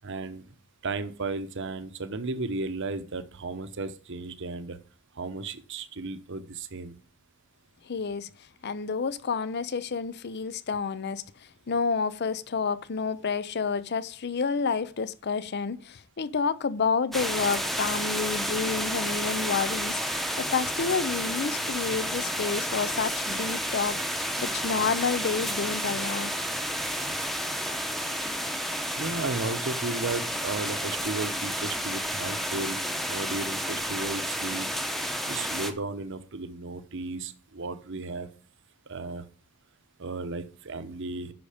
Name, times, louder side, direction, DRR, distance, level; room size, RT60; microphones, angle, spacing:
voice 1, 0.0-0.5 0.8-4.8 5.2-6.9 29.0-32.8 33.1-34.7 35.3-38.3 38.9-39.2 40.0-41.3, right 3 dB, 55° right, 0.9 m, -34 dB
voice 2, 7.8-8.3 8.6-11.2 11.7-26.3, left 5 dB, 50° left, 0.5 m, -29 dB
sound 1, 17.1-35.7, equal, ahead, 0.9 m, -31 dB
10.0 x 6.3 x 5.0 m
head